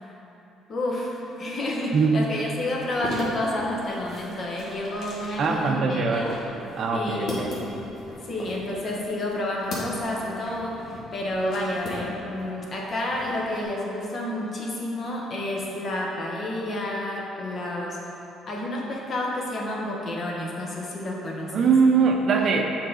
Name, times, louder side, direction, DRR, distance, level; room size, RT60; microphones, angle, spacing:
voice 1, 0.7-6.4 6.9-7.3 8.2-18.0 18.5-21.7, left 1 dB, 45° left, -2 dB, 1.1 m, -30 dB
voice 2, 1.9-2.3 5.4-6.3 6.8-7.5 21.5-22.6, right 5 dB, 55° right, 2 dB, 0.6 m, -21 dB
sound 1, 2.8-12.5 12.8-13.6, left 1 dB, 60° left, 1.4 m, -38 dB
6.6 x 3.9 x 4.0 m, 3.0 s
cardioid pair, 95°, 0 cm